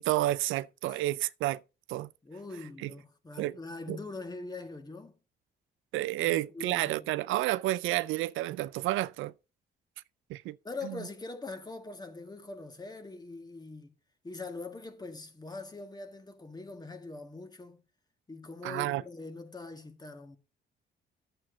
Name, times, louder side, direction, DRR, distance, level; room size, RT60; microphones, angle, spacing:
voice 1, 0.0-1.6 1.9-2.1 2.8-2.9 3.4-3.6 3.9-4.0 5.9-9.3 10.3-10.6 10.8-11.0 18.6-19.0, right 16 dB, 90° right, 0.4 m, -30 dB
voice 2, 2.2-5.2 6.2-7.1 10.6-13.9 14.2-17.8 18.3-20.4, left 3 dB, 20° left, 1.9 m, -43 dB
9.9 x 7.9 x 4.1 m
cardioid pair, 90°, 20 cm